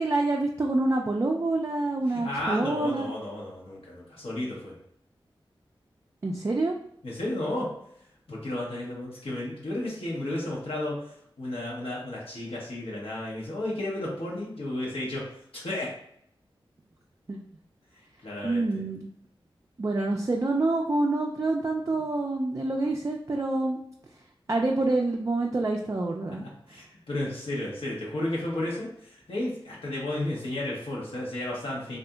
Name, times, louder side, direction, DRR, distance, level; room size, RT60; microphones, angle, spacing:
voice 1, 0.0-3.1 6.2-6.7 17.3-17.4 18.4-19.1 19.8-23.8 24.5-26.4, right 2 dB, 35° right, 0 dB, 0.3 m, -27 dB
voice 2, 2.1-4.7 7.0-7.7 8.3-15.9 18.2-18.7 26.7-32.0, left 1 dB, 80° left, -4 dB, 0.9 m, -33 dB
2.7 x 2.4 x 2.3 m, 0.70 s
cardioid pair, 40°, 9 cm